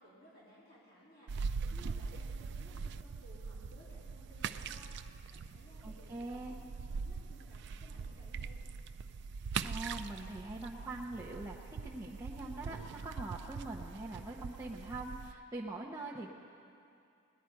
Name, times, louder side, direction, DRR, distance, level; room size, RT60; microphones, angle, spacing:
voice 1, 0.0-8.6, equal, 45° left, -9 dB, 2.8 m, -59 dB
sound 1, 1.3-15.3, right 5 dB, 50° right, 0.3 m, -42 dB
voice 2, 5.8-6.6 9.6-11.6 11.8-12.8 13.0-16.3, right 2 dB, 15° right, -5 dB, 0.7 m, -43 dB
18.5 x 10.5 x 4.6 m, 2.5 s
head